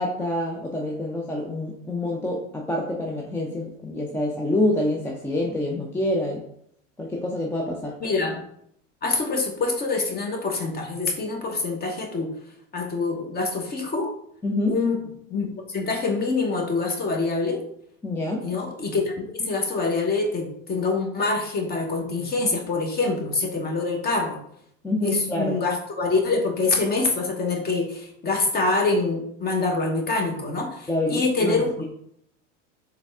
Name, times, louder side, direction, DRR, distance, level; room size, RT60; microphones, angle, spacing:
voice 1, 0.0-6.4 7.0-8.0 14.4-14.8 18.0-18.5 24.8-25.6 30.9-31.8, left 1 dB, 5° left, -1 dB, 0.4 m, -27 dB
voice 2, 8.0-8.4 9.0-12.3 12.7-14.1 14.7-15.0 15.3-17.6 18.4-24.4 25.0-31.7, left 3 dB, 25° left, 2 dB, 1.0 m, -25 dB
4.0 x 3.3 x 3.4 m, 0.69 s
hypercardioid pair, 100°, 38 cm